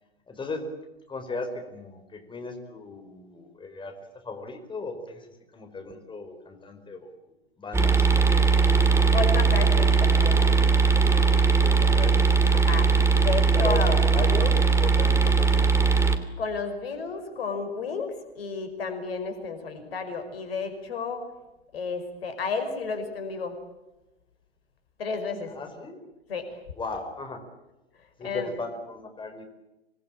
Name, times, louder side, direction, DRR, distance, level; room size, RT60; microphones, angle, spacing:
voice 1, 0.3-0.7 1.1-5.3 5.5-7.1 7.6-8.5 11.6-12.3 13.5-15.7 25.5-26.0 26.7-27.4 28.2-29.4, left 3 dB, 15° left, 5 dB, 4.9 m, -36 dB
sound 1, 7.7-16.2, right 4 dB, 10° right, 2.7 m, -20 dB
voice 2, 9.1-10.4 12.5-12.9 13.2-14.0 16.4-21.3 21.7-23.6 25.0-25.5 26.3-26.6 28.2-28.5, left 4 dB, 70° left, 8 dB, 5.6 m, -32 dB
27.0 x 20.5 x 8.9 m, 1.0 s
figure-of-eight pair, 95°, 31 cm